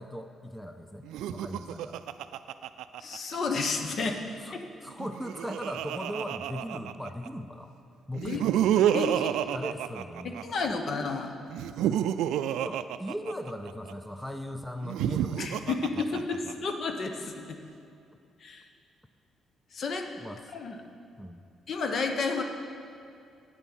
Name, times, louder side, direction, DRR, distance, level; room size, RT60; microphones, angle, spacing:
voice 1, 0.0-2.0 4.4-7.7 8.1-8.7 9.5-10.5 12.6-16.2 20.2-20.4 21.2-21.4, equal, 5° left, 7 dB, 0.5 m, -39 dB
Laughter, 1.0-3.6 4.9-7.3 8.1-10.7 11.5-13.9 14.8-16.7, right 10 dB, 85° right, 0.3 m, -29 dB
voice 2, 3.0-4.6 8.2-8.4 8.9-9.3 10.2-11.3 15.4-17.6 18.4-18.6 19.7-20.1 20.5-20.8 21.7-22.4, left 4 dB, 55° left, 5 dB, 1.0 m, -31 dB
9.0 x 8.2 x 6.2 m, 2.5 s
cardioid pair, 90°, 0 cm